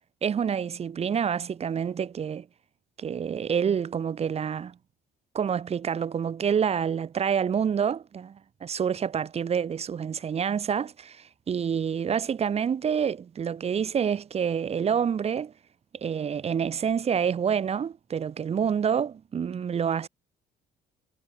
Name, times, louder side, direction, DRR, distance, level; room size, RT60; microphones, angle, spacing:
voice 1, 0.2-2.5 3.0-4.8 5.3-15.5 16.0-20.1, right 7 dB, 40° right, 1.5 m, -27 dB
cardioid pair, 110°, 17 cm